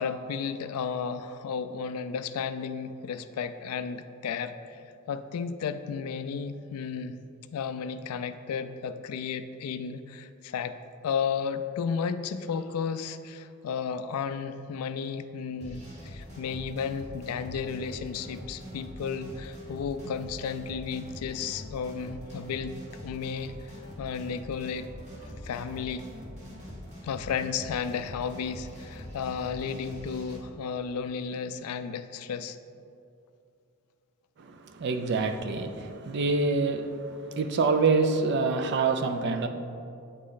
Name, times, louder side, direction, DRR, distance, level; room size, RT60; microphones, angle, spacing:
voice 1, 0.0-4.8 5.1-7.2 7.5-10.8 11.0-22.8 23.0-24.9 25.2-26.1 27.0-32.6, left 6 dB, 80° left, 11 dB, 0.3 m, -33 dB
sound 1, 15.6-30.4, equal, 30° right, 1.0 m, -44 dB
voice 2, 34.4-39.5, right 4 dB, 50° right, 7 dB, 0.4 m, -26 dB
8.5 x 3.1 x 3.9 m, 2.5 s
head